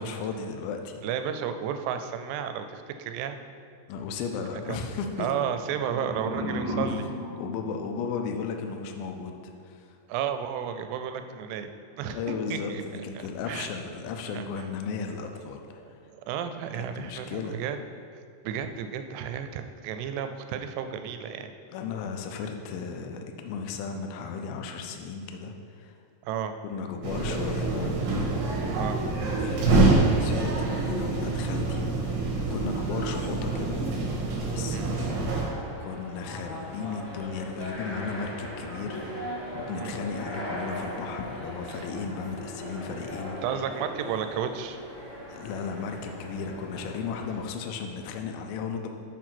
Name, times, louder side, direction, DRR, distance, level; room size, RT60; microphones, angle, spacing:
voice 1, 0.0-0.9 3.9-5.3 7.4-9.4 9.6-10.0 12.1-15.8 16.7-17.6 21.7-25.9 26.6-27.9 29.4-33.8 34.4-35.1 35.8-43.3 45.3-48.9, left 5 dB, 90° left, 4 dB, 2.0 m, -35 dB
voice 2, 1.0-3.4 4.7-4.8 5.2-7.1 10.1-11.7 12.0-12.2 12.5-13.7 14.3-14.4 15.8-17.8 18.4-21.5 26.2-26.5 28.8-29.0 34.7-34.9 39.8-40.0 41.7-41.9 43.4-44.8, right 8 dB, 85° right, 8 dB, 2.6 m, -32 dB
sound 1, 5.5-8.5, left 1 dB, 45° right, 1.1 m, -35 dB
sound 2, 27.0-35.5, right 2 dB, 65° right, 2.3 m, -26 dB
sound 3, 35.3-47.5, equal, 55° left, 1.3 m, -39 dB
7.4 x 4.6 x 5.9 m, 2.4 s
omnidirectional pair, 4.9 m